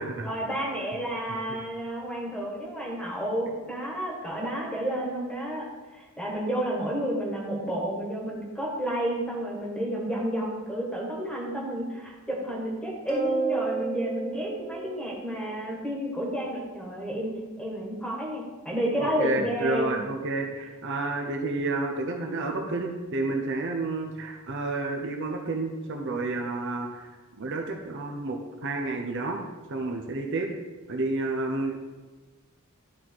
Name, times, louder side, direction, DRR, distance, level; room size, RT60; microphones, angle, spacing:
voice 1, 0.2-20.0, right 1 dB, 5° left, -3 dB, 1.7 m, -31 dB
sound 1, 13.1-15.7, right 5 dB, 35° left, 2.1 m, -31 dB
voice 2, 19.0-27.1 27.4-29.4 29.7-30.5 30.9-31.8, right 2 dB, 55° right, 2 dB, 0.8 m, -30 dB
11.5 x 4.2 x 4.6 m, 1.3 s
head